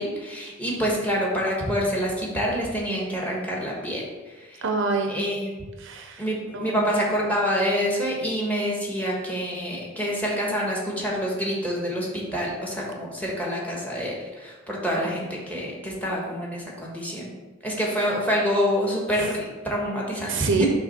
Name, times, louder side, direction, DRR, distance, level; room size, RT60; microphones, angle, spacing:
voice 1, 0.0-4.0 4.4-4.6 5.1-5.5 6.2-17.3 17.6-20.7, equal, 10° left, -3 dB, 1.3 m, -27 dB
voice 2, 4.6-5.2 5.8-6.2 6.5-6.9 20.3-20.7, right 3 dB, 60° right, 4 dB, 0.6 m, -26 dB
5.9 x 3.2 x 5.7 m, 1.3 s
head